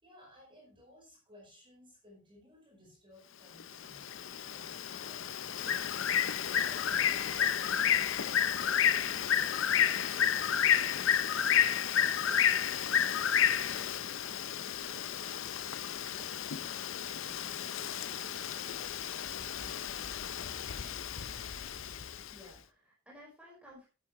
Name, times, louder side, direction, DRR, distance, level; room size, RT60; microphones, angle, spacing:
voice 1, 0.0-5.3 8.6-9.0, left 1 dB, 25° right, -1 dB, 4.7 m, -59 dB
Bird, 3.6-22.3, left 9 dB, 65° left, 0.7 m, -31 dB
voice 2, 13.6-13.9 22.3-23.9, left 1 dB, 5° right, -5 dB, 4.8 m, -55 dB
11.5 x 9.7 x 3.1 m, 0.33 s
head